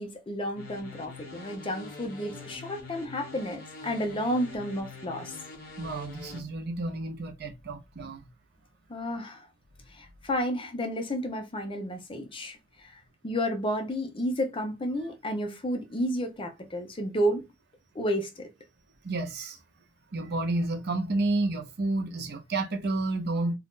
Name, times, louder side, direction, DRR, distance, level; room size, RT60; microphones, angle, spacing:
voice 1, 0.0-5.4 8.9-9.5 9.9-17.5 17.9-18.5, equal, 25° left, 0.6 m, -31 dB
sound 1, 0.6-6.4, left 3 dB, 50° left, 1.1 m, -44 dB
voice 2, 5.8-8.2 19.0-19.6 20.1-23.5, right 2 dB, 55° right, 0.7 m, -30 dB
2.6 x 2.4 x 3.6 m
head